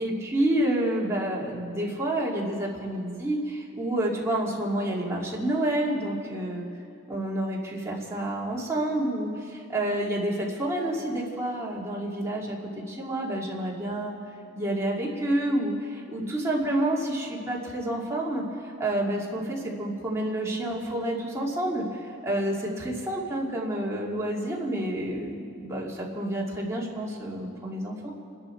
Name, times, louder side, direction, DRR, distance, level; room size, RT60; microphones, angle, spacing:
voice 1, 0.0-6.7 7.1-9.4 9.7-14.2 14.6-28.1, right 1 dB, 15° right, -4 dB, 2.4 m, -29 dB
28.5 x 10.5 x 4.5 m, 2.4 s
head